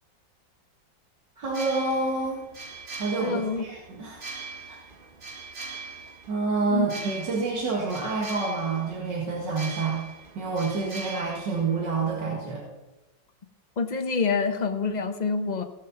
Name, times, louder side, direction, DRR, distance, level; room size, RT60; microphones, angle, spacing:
sound 1, 1.4-12.2, right 4 dB, 35° right, 1.1 m, -41 dB
voice 1, 1.4-2.4 2.9-4.2 4.7-4.8 6.3-10.0 10.4-12.6, right 3 dB, 65° right, -4 dB, 2.5 m, -28 dB
voice 2, 3.2-3.6 6.7-6.9 13.8-15.6, left 4 dB, 40° left, 7 dB, 0.6 m, -26 dB
17.0 x 6.4 x 6.0 m, 1.0 s
omnidirectional pair, 2.1 m